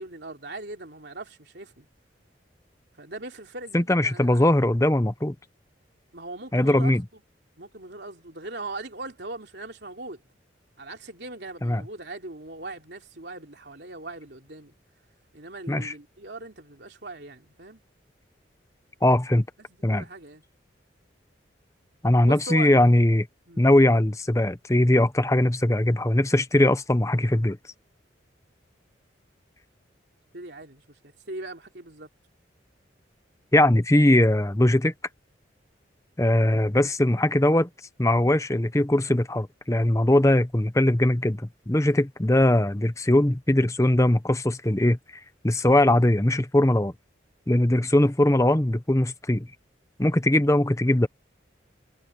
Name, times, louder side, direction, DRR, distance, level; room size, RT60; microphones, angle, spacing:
voice 1, 0.0-1.9 3.0-4.5 6.1-7.2 7.6-10.2 10.8-14.7 15.3-17.8 19.6-20.4 22.3-22.7 23.5-23.6 30.3-30.8 31.3-32.1, right 2 dB, 65° right, 3.4 m, -40 dB
voice 2, 3.7-5.3 6.5-7.0 11.6-11.8 15.7-15.9 19.0-19.5 19.8-20.0 22.0-23.3 23.6-27.6 33.5-34.9 36.2-37.7 38.0-45.0 45.4-46.9 47.5-49.5 50.0-51.1, left 1 dB, 15° left, 0.9 m, -20 dB
head